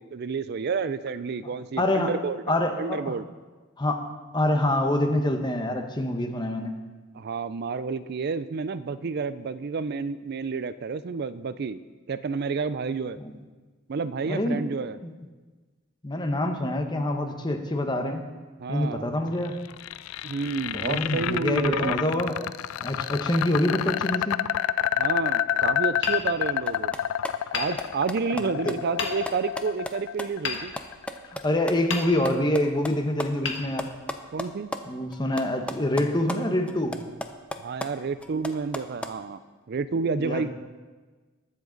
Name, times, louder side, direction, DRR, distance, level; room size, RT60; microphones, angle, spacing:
voice 1, 0.0-2.4 2.8-3.2 7.1-11.8 12.1-13.2 13.9-15.0 18.6-19.1 20.2-22.1 25.0-26.9 27.5-30.7 34.3-34.7 37.6-39.4 39.7-40.5, right 5 dB, 50° right, 14 dB, 0.4 m, -30 dB
voice 2, 1.8-2.1 2.5-3.2 3.8-6.7 13.2-13.4 14.3-14.6 15.0-15.1 16.0-18.3 18.7-19.6 20.7-22.5 22.8-24.4 28.3-28.8 31.3-33.9 34.9-37.0 40.2-40.5, left 1 dB, 20° left, 5 dB, 1.0 m, -26 dB
sound 1, 19.4-31.5, left 10 dB, 80° left, 0.3 m, -28 dB
Hammer, 26.0-27.0 27.5-28.4 29.0-29.6 30.4-31.4 31.9-32.6 33.4-34.4, left 4 dB, 60° left, 1.4 m, -35 dB
sound 2, 26.7-31.7 32.0-34.8 35.1-36.4 36.7-39.1, left 1 dB, 5° left, 0.5 m, -35 dB
20.5 x 7.4 x 4.0 m, 1.3 s
head